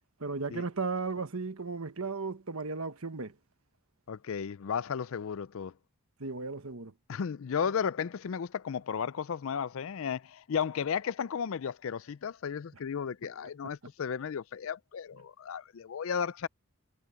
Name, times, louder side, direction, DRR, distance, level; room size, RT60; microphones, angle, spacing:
voice 1, 0.2-3.3 6.2-6.9 13.6-13.7, right 4 dB, 75° right, 1.4 m, -35 dB
voice 2, 4.1-5.7 7.1-16.5, left 7 dB, 65° left, 0.4 m, -34 dB
head